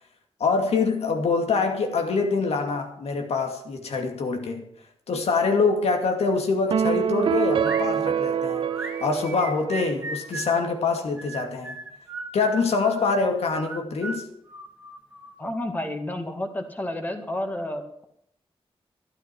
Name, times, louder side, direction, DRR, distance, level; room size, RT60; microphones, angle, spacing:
voice 1, 0.4-4.7 5.1-11.8 12.3-14.3, left 4 dB, 90° left, 4 dB, 2.4 m, -25 dB
sound 1, 6.7-10.2, right 8 dB, 55° right, 0.4 m, -26 dB
sound 2, 7.1-7.9 8.5-10.6 11.2-13.0 13.5-15.4, right 3 dB, 15° right, 2.4 m, -37 dB
voice 2, 15.4-18.0, left 1 dB, 15° left, 5 dB, 2.0 m, -31 dB
12.5 x 12.5 x 6.1 m, 0.72 s
wide cardioid pair, 175°, 10 cm